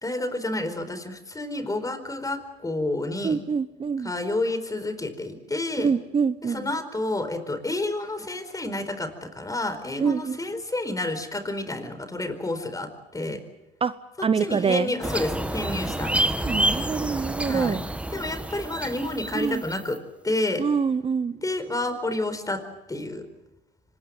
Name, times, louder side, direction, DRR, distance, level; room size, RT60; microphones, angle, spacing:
voice 1, 0.0-3.4 4.0-5.9 6.4-13.4 14.4-16.3 17.5-17.8 18.1-20.0 20.2-20.6 21.4-22.6 22.9-23.3, left 2 dB, 15° left, 10 dB, 4.6 m, -29 dB
voice 2, 3.2-4.1 5.8-6.7 10.0-10.4 13.8-13.9 14.2-14.9 16.4-17.8 19.3-19.6 20.6-21.4, right 6 dB, 30° right, 14 dB, 0.8 m, -25 dB
sound 1, 15.0-19.9, right 1 dB, 5° right, 1.7 m, -28 dB
25.0 x 20.5 x 7.9 m, 0.98 s
supercardioid pair, 75°, 19 cm